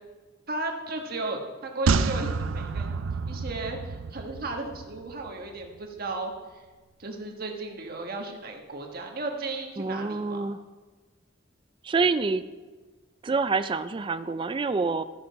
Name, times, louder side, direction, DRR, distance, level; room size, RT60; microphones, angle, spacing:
voice 1, 0.5-2.9 3.3-6.6 7.0-10.4, right 2 dB, 50° right, 2 dB, 1.4 m, -35 dB
sound 1, 1.9-5.3 5.6-5.7, right 4 dB, 90° right, 0.5 m, -29 dB
voice 2, 9.8-10.6 11.8-12.4 13.2-15.0, right 4 dB, 25° right, 12 dB, 0.3 m, -27 dB
13.5 x 6.3 x 4.7 m, 1.3 s
head